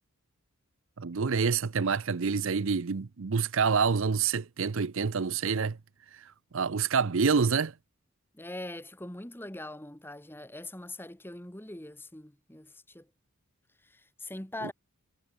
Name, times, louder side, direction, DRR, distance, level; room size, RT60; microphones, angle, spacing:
voice 1, 1.0-5.8 6.5-7.7, right 5 dB, 60° right, 0.6 m, -27 dB
voice 2, 8.3-13.1 13.8-14.7, left 1 dB, 10° left, 1.2 m, -42 dB
head